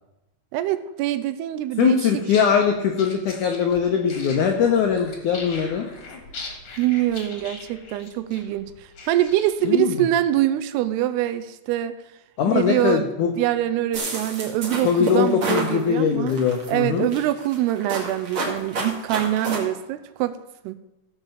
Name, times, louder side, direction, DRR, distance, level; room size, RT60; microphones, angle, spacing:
voice 1, 0.5-2.1 6.8-12.0 12.5-13.1 13.4-16.3 16.7-20.4 20.6-20.8, right 13 dB, 80° right, 12 dB, 2.5 m, -24 dB
voice 2, 1.8-5.9 9.6-9.9 12.4-13.3 14.8-17.1, left 7 dB, 85° left, 4 dB, 1.7 m, -21 dB
sound 1, 2.2-9.8, left 3 dB, 45° left, 1.9 m, -40 dB
sound 2, 13.9-15.7 16.3-16.7 17.1-19.6, right 2 dB, 40° right, 2.3 m, -29 dB
15.5 x 5.3 x 7.0 m, 0.94 s
omnidirectional pair, 4.8 m